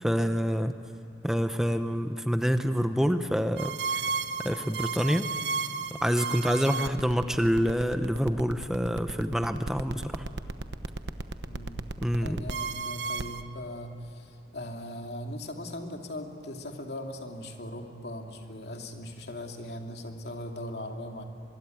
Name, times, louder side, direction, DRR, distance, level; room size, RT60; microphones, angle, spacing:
voice 1, 0.0-0.8 1.2-4.0 4.4-5.3 5.9-10.3 12.0-12.4, equal, 5° right, 8 dB, 0.8 m, -27 dB
sound 1, 3.6-13.4, right 4 dB, 85° right, 1.0 m, -33 dB
voice 2, 11.4-11.8 12.2-21.2, left 1 dB, 70° left, 3 dB, 2.6 m, -39 dB
24.5 x 22.5 x 9.2 m, 2.6 s
head